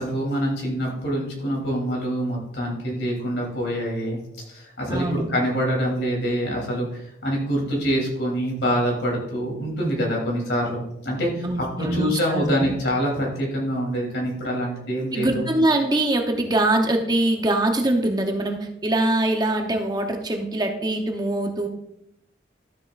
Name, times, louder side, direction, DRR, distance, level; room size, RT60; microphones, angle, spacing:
voice 1, 0.0-4.2 4.5-15.5, equal, 80° left, -2 dB, 3.3 m, -25 dB
voice 2, 4.9-5.3 11.4-12.7 15.1-21.7, right 1 dB, 25° right, 4 dB, 0.9 m, -23 dB
12.5 x 7.0 x 2.5 m, 0.79 s
head